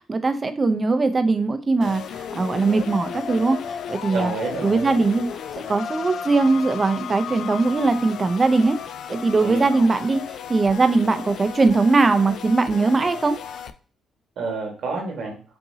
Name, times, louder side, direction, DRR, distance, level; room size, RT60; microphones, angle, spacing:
voice 1, 0.1-2.0 2.3-3.6 3.9-4.3 4.6-5.2 5.7-8.8 9.1-10.2 10.5-13.4, right 3 dB, 30° right, 9 dB, 0.6 m, -20 dB
sound 1, 1.8-13.7, left 8 dB, 70° left, 0.4 m, -34 dB
voice 2, 4.1-5.0 9.4-9.6 14.3-15.4, right 4 dB, 70° right, 1 dB, 1.6 m, -29 dB
5.5 x 2.7 x 2.8 m, 0.40 s
cardioid pair, 90°, 0 cm